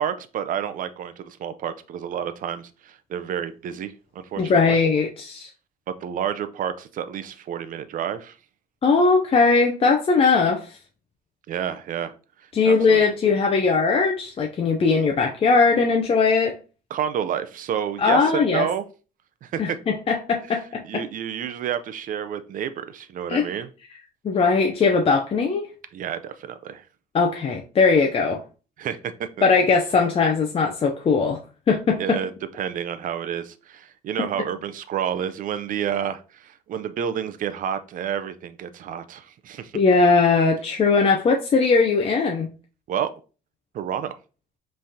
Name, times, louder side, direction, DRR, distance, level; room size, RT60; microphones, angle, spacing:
voice 1, 0.0-4.8 6.0-8.4 11.5-12.1 12.6-13.0 16.9-18.8 19.4-19.8 20.8-23.7 25.9-26.8 28.8-29.1 32.0-39.7 42.9-43.1 43.7-44.2, right 9 dB, 55° right, 0.5 m, -29 dB
voice 2, 4.4-5.5 8.8-10.6 12.5-16.6 18.0-18.7 19.6-21.0 23.3-23.5 24.2-25.7 27.1-28.4 29.4-31.4 31.7-32.2 34.2-34.3 39.7-42.5, left 4 dB, 35° left, 0.6 m, -20 dB
5.4 x 3.3 x 2.8 m
cardioid pair, 110°, 17 cm